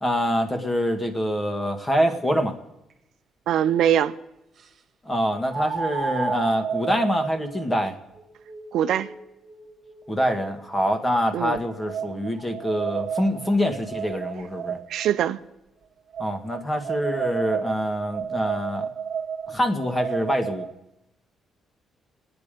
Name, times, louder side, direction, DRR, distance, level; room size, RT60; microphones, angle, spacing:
voice 1, 0.0-2.6 5.1-7.9 10.1-14.8 16.2-18.9 19.5-20.6, equal, 20° left, 2.0 m, -25 dB
sound 1, 2.9-3.0 5.5-10.7 11.4-15.1 16.1-20.7, right 7 dB, 55° right, 1.6 m, -32 dB
voice 2, 3.5-4.1 8.7-9.1 11.3-11.6 14.9-15.4, right 10 dB, 80° right, 0.6 m, -22 dB
28.5 x 9.6 x 5.2 m
cardioid pair, 90°, 0 cm